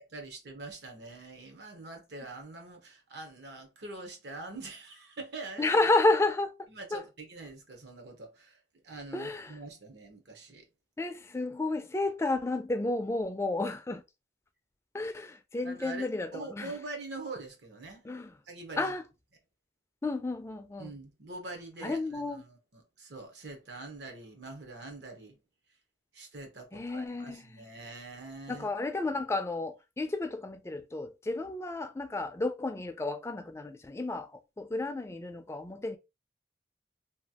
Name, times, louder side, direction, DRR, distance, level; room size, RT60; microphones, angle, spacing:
voice 1, 0.0-5.7 6.7-10.7 15.6-16.1 16.3-18.1 18.5-18.9 20.8-25.4 26.1-28.7, right 2 dB, 75° right, 0.9 m, -44 dB
voice 2, 5.6-7.0 9.1-9.6 11.0-14.0 14.9-16.7 18.0-18.3 18.8-19.0 20.0-20.9 21.8-22.4 26.7-27.6 28.5-36.0, left 2 dB, 15° left, 0.3 m, -31 dB
3.0 x 2.3 x 2.8 m
head